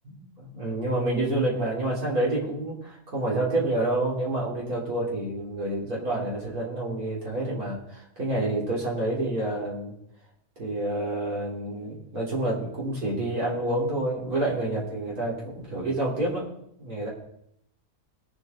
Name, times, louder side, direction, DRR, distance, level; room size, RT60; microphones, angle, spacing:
voice 1, 0.2-9.9 10.6-16.5 16.8-17.1, right 1 dB, 75° right, -4 dB, 4.4 m, -28 dB
21.5 x 7.6 x 4.0 m, 0.74 s
omnidirectional pair, 1.6 m